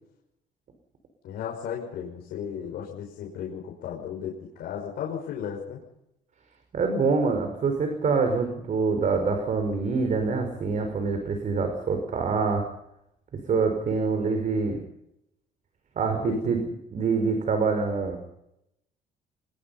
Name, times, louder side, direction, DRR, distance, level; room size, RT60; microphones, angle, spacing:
voice 1, 1.2-5.8 16.1-16.5, left 8 dB, 70° left, -1 dB, 5.7 m, -35 dB
voice 2, 6.7-12.6 13.5-14.8 16.0-16.6 16.9-18.2, right 4 dB, 45° right, 5 dB, 5.0 m, -25 dB
25.0 x 21.5 x 5.6 m, 0.81 s
cardioid pair, 110°, 17 cm